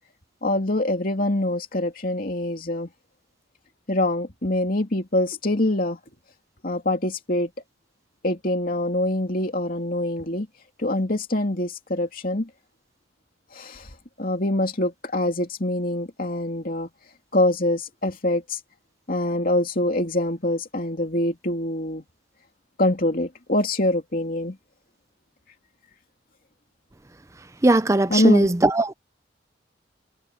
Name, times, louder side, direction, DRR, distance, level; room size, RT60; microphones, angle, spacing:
voice 1, 0.4-2.9 3.9-6.0 6.6-7.5 8.2-10.5 10.8-12.5 13.5-13.9 14.2-16.9 17.3-18.6 19.1-22.0 22.8-24.6 28.1-28.5, left 1 dB, 45° left, 2.7 m, -24 dB
voice 2, 27.6-28.9, right 2 dB, 15° right, 0.5 m, -19 dB
head